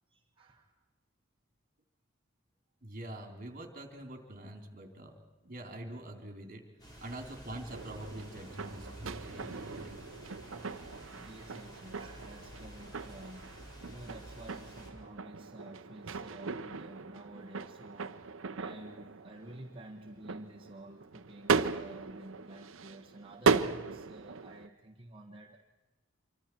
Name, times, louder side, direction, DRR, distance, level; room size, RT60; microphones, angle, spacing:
voice 1, 0.1-0.8 6.9-7.1 11.1-25.6, right 1 dB, 25° right, -2 dB, 1.5 m, -51 dB
voice 2, 2.8-6.6 7.0-9.9, right 1 dB, 45° right, 4 dB, 3.0 m, -45 dB
sound 1, 6.8-14.9, equal, 20° left, 4.1 m, -50 dB
sound 2, 7.7-24.7, right 4 dB, 75° right, 0.8 m, -37 dB
26.5 x 24.0 x 4.5 m, 1.2 s
head